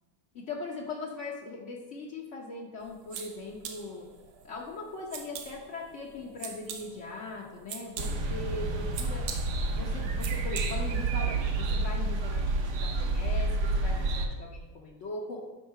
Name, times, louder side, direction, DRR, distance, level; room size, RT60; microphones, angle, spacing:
voice 1, 0.3-4.0 4.4-9.2 9.7-15.5, left 3 dB, 55° left, -3 dB, 0.8 m, -40 dB
sound 1, 2.8-11.1, right 7 dB, 80° right, 1.7 m, -44 dB
sound 2, 8.0-14.3, right 2 dB, 60° right, 1.1 m, -29 dB
10.0 x 3.9 x 5.6 m, 1.2 s
omnidirectional pair, 2.3 m